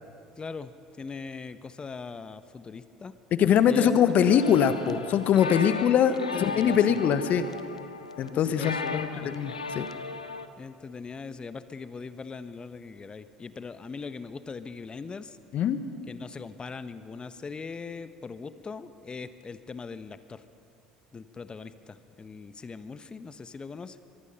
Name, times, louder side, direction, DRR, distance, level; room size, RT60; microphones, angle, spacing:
voice 1, 0.4-0.7 1.0-3.1 3.7-4.5 5.4-7.0 8.3-9.3 10.6-15.4 16.1-20.4 21.1-24.0, left 4 dB, 25° left, 12 dB, 1.1 m, -40 dB
voice 2, 3.4-7.4 8.2-9.9 15.5-15.8, left 8 dB, 50° left, 11 dB, 1.4 m, -23 dB
sound 1, 4.3-10.5, left 4 dB, 90° left, 0.7 m, -37 dB
23.5 x 23.0 x 5.6 m, 2.6 s
figure-of-eight pair, 60°, 3 cm